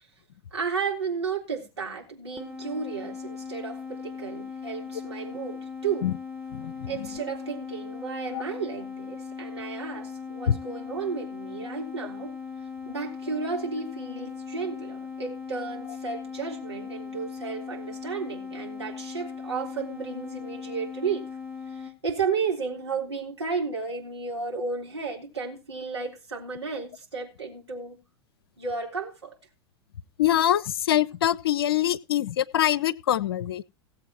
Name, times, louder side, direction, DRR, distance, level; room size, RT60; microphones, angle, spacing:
voice 1, 0.5-6.1 6.9-12.4 12.9-21.2 21.7-28.0 28.6-29.4, right 5 dB, 80° right, 3.7 m, -33 dB
sound 1, 2.4-21.9, left 6 dB, 15° right, 1.5 m, -39 dB
voice 2, 6.5-7.2 8.3-8.4 10.5-10.6 30.2-33.6, left 11 dB, 60° left, 0.6 m, -24 dB
17.0 x 7.7 x 4.3 m
figure-of-eight pair, 85°, 14 cm